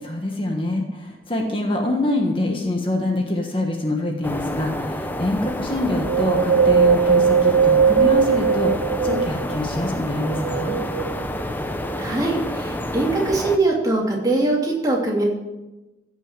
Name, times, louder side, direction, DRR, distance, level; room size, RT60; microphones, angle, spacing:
voice 1, 0.0-10.8, left 1 dB, 30° left, 2 dB, 1.4 m, -25 dB
sound 1, 4.2-13.6, left 1 dB, 10° left, 0.8 m, -29 dB
Wind, 6.1-9.6 10.2-11.4 12.0-12.1, right 6 dB, 75° right, 0.3 m, -19 dB
voice 2, 12.0-15.2, right 2 dB, 20° right, -3 dB, 2.9 m, -22 dB
15.5 x 6.4 x 7.5 m, 1.0 s
head